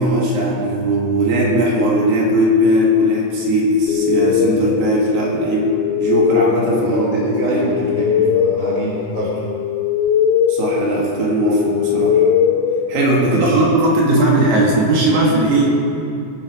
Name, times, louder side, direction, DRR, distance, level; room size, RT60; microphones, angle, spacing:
voice 1, 0.0-5.7 6.0-7.8 10.5-12.2 12.9-15.7, right 1 dB, 60° right, -3 dB, 3.5 m, -17 dB
sound 1, 3.9-13.6, left 8 dB, 85° left, 2.8 m, -20 dB
voice 2, 6.8-9.4 13.2-13.6, right 1 dB, 45° left, -5 dB, 1.3 m, -25 dB
18.0 x 11.5 x 5.0 m, 2.5 s
omnidirectional pair, 5.9 m